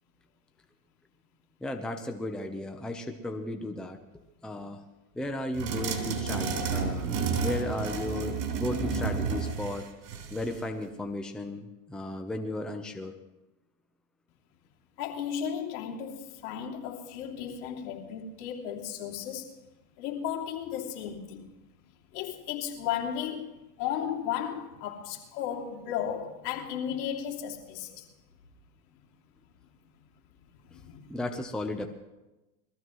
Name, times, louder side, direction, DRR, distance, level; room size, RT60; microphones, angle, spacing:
voice 1, 1.6-4.0 4.4-4.8 5.1-9.9 10.3-13.1 30.7-30.8 31.1-31.9, left 1 dB, ahead, 0.7 m, -35 dB
sound 1, 5.6-10.6, right 5 dB, 80° right, 3.6 m, -31 dB
voice 2, 15.0-19.6 20.0-21.5 22.1-28.1 30.5-31.0, left 9 dB, 70° left, 2.8 m, -35 dB
22.0 x 14.5 x 3.2 m
supercardioid pair, 125°, 47 cm